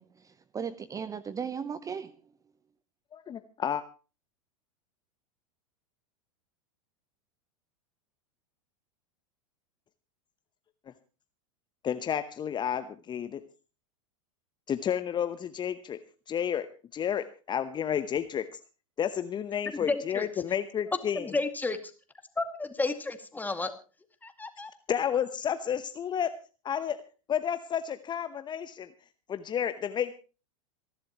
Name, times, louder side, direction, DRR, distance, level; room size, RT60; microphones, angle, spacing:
voice 1, 0.0-2.2, right 6 dB, 20° right, 16 dB, 0.8 m, -37 dB
voice 2, 3.1-3.8 10.9-11.0 11.8-13.4 14.7-16.0 16.3-16.7 16.9-18.6 19.0-21.3 24.9-26.3 26.6-27.0 27.3-28.9 29.3-30.1, left 9 dB, 25° left, 11 dB, 0.9 m, -31 dB
voice 3, 19.9-20.3 21.2-21.8 22.4-23.7 24.2-24.7, left 3 dB, 10° left, 7 dB, 2.2 m, -31 dB
27.0 x 11.5 x 3.0 m, 0.35 s
figure-of-eight pair, 90°, 18 cm